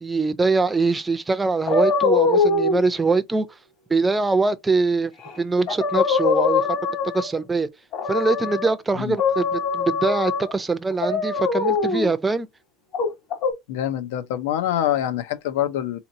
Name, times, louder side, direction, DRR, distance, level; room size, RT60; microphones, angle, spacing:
voice 1, 0.0-3.5 3.9-5.1 5.4-6.7 7.1-7.7 8.1-12.5, right 3 dB, 10° right, 0.4 m, -23 dB
sound 1, 1.7-2.8 5.2-5.3 5.7-7.4 7.9-8.7 9.2-10.5 11.0-12.1 12.9-13.5, left 4 dB, 40° left, 1.4 m, -22 dB
voice 2, 13.7-16.0, left 11 dB, 85° left, 0.7 m, -25 dB
4.1 x 2.9 x 2.6 m
cardioid pair, 160°, 0 cm